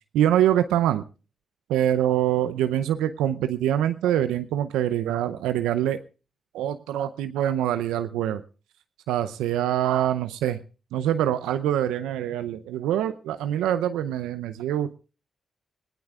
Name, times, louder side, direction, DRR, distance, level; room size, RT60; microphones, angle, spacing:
voice 1, 0.1-1.0 1.7-6.0 6.5-8.4 9.1-10.6 10.9-15.0, right 11 dB, 80° right, 10 dB, 0.6 m, -24 dB
25.0 x 16.0 x 2.4 m, 0.35 s
hypercardioid pair, 40°, 0 cm